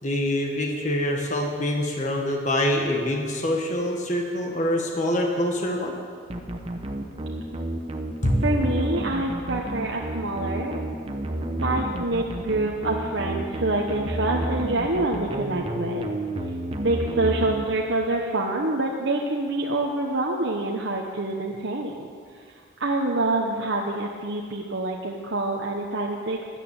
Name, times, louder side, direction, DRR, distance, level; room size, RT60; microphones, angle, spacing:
voice 1, 0.0-5.9 8.2-8.4, left 1 dB, 35° left, 1 dB, 1.5 m, -25 dB
sound 1, 6.3-18.2, right 1 dB, 25° right, 0.9 m, -31 dB
voice 2, 8.4-10.8 11.6-16.1 16.8-22.0 22.8-26.4, right 2 dB, 55° right, -1 dB, 1.1 m, -26 dB
13.0 x 11.0 x 8.9 m, 2.1 s
head